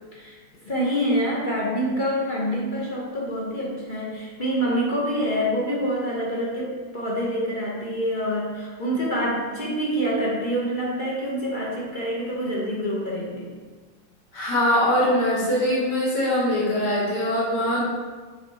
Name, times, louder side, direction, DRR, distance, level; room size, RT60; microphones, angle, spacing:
voice 1, 0.6-13.5, equal, 35° left, -4 dB, 0.9 m, -26 dB
voice 2, 14.3-17.8, left 1 dB, 65° left, -7 dB, 2.2 m, -22 dB
6.4 x 3.7 x 4.2 m, 1.5 s
omnidirectional pair, 2.0 m